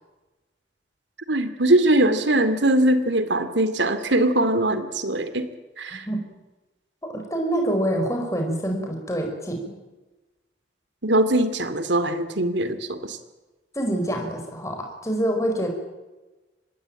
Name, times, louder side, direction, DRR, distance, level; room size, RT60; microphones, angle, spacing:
voice 1, 1.3-5.5 5.8-6.1 11.0-13.2, right 1 dB, 80° right, 11 dB, 2.5 m, -21 dB
voice 2, 5.9-6.2 7.0-9.7 13.7-15.7, right 1 dB, 15° left, 3 dB, 5.0 m, -26 dB
25.5 x 20.0 x 9.0 m, 1.1 s
head